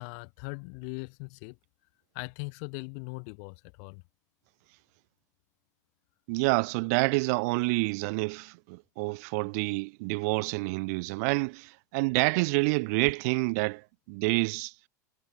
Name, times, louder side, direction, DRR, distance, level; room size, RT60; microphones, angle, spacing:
voice 1, 0.0-1.5 2.1-4.0, left 40 dB or more, 60° left, 1.2 m, -40 dB
voice 2, 6.3-13.8 14.1-14.7, right 28 dB, 60° right, 0.4 m, -28 dB
hypercardioid pair, 100°, 10 cm